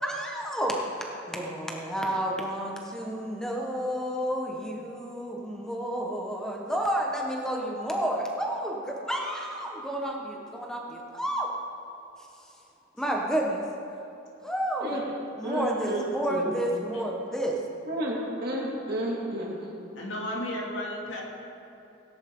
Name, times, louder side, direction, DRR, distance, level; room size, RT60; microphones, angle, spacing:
voice 1, 0.0-11.5 13.0-13.6 14.4-14.9 15.4-17.6, right 1 dB, 5° left, -1 dB, 1.4 m, -30 dB
voice 2, 15.4-16.5 17.9-19.6, right 1 dB, 55° right, -4 dB, 2.7 m, -31 dB
voice 3, 20.0-21.2, left 1 dB, 80° left, -3 dB, 2.6 m, -33 dB
17.5 x 10.5 x 3.9 m, 2.8 s
head